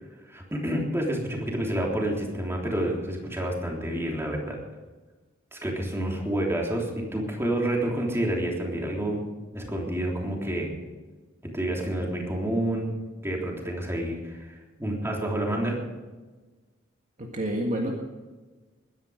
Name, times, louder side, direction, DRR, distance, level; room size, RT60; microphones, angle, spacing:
voice 1, 0.3-4.6 5.5-9.2 9.5-10.7 11.5-12.9 13.2-15.8, right 1 dB, 15° right, -1 dB, 3.5 m, -29 dB
voice 2, 17.2-17.9, right 1 dB, 40° right, 0 dB, 1.9 m, -28 dB
21.0 x 10.5 x 5.2 m, 1.3 s
head